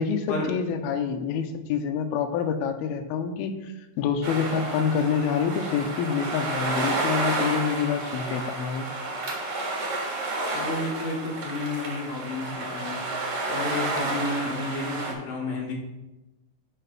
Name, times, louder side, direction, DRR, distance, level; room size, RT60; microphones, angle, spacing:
voice 1, 0.0-3.6 4.0-8.9, left 6 dB, 80° left, 6 dB, 2.4 m, -27 dB
sound 1, 4.2-15.1, right 2 dB, 50° right, 2.2 m, -31 dB
voice 2, 10.5-13.0 13.5-15.7, left 2 dB, 60° left, -2 dB, 3.4 m, -31 dB
9.9 x 4.9 x 4.7 m, 1.0 s
omnidirectional pair, 4.8 m